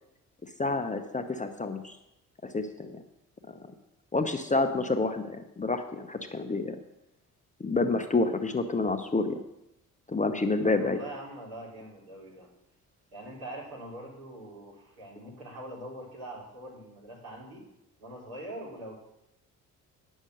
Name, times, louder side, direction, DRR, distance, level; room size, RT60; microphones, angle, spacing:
voice 1, 0.6-2.0 2.5-3.0 4.1-6.8 7.6-9.4 10.1-11.0, left 3 dB, 15° left, 7 dB, 0.9 m, -28 dB
voice 2, 10.6-12.5 13.1-17.6 18.0-18.9, right 1 dB, 70° right, -6 dB, 4.3 m, -43 dB
9.8 x 6.4 x 6.6 m, 0.87 s
figure-of-eight pair, 45°, 45 cm